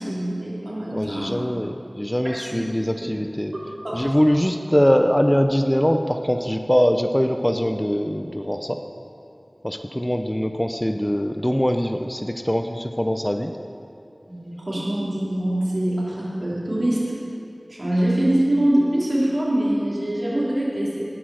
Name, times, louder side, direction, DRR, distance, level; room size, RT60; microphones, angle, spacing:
voice 1, 0.0-1.5 2.2-2.7 3.0-3.2 3.5-4.1 14.3-17.0 17.7-21.0, right 1 dB, 65° right, -6 dB, 3.4 m, -24 dB
voice 2, 0.9-3.5 3.9-8.8 9.6-13.5, equal, 10° left, 6 dB, 0.6 m, -22 dB
17.5 x 6.2 x 6.4 m, 2.7 s
wide cardioid pair, 45°, 0 cm